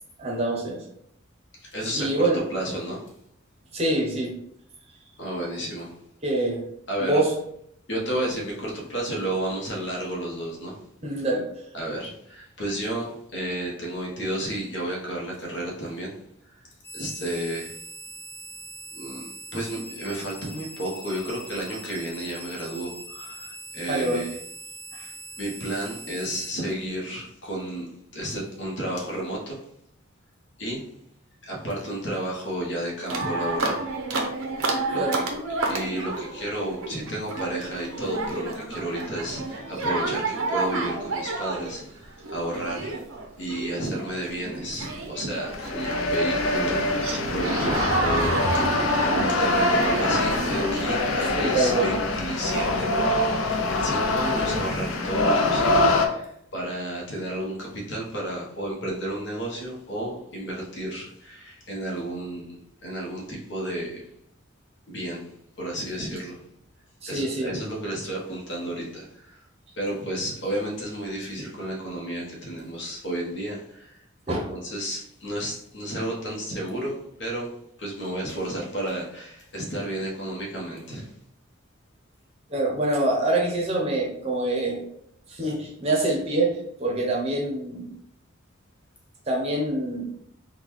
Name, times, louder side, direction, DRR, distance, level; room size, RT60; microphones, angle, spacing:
voice 1, 0.2-0.8 1.9-2.4 3.7-4.3 6.2-6.6 7.0-7.3 11.0-11.4 23.9-24.2 34.9-35.2 51.2-51.9 67.0-67.5 74.3-74.5 82.5-84.8 85.3-88.0 89.3-90.0, right 2 dB, 30° right, -1 dB, 0.7 m, -25 dB
voice 2, 1.6-3.1 5.2-5.9 6.9-7.2 7.9-10.8 11.7-16.2 16.9-17.8 18.9-24.4 24.9-29.6 30.6-30.9 31.4-33.8 34.9-35.2 35.7-43.0 43.4-64.0 64.9-65.3 65.6-66.4 67.1-69.4 69.8-74.0 74.3-77.5 77.8-81.1, right 1 dB, 55° left, -3 dB, 1.0 m, -32 dB
sound 1, 16.8-26.5, right 2 dB, 15° left, 0.4 m, -41 dB
sound 2, 33.1-51.3, right 2 dB, 90° right, 0.6 m, -30 dB
sound 3, 45.4-56.1, left 2 dB, 75° left, 0.5 m, -24 dB
3.7 x 2.2 x 3.1 m, 0.73 s
head